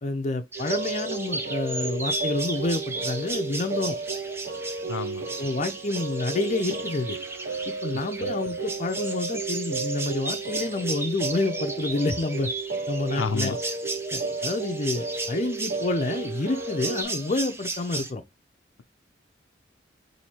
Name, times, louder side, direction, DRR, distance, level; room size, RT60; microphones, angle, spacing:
voice 1, 0.0-4.0 5.4-7.2 7.7-12.5 12.9-13.6 14.1-18.2, left 2 dB, 40° left, 0.5 m, -28 dB
sound 1, 0.5-18.1, right 2 dB, 15° right, 0.5 m, -35 dB
sound 2, 0.5-17.0, right 4 dB, 50° right, 0.7 m, -33 dB
voice 2, 4.9-5.3 8.2-8.3 13.1-13.6, left 5 dB, 90° left, 0.5 m, -30 dB
4.2 x 2.7 x 4.4 m
head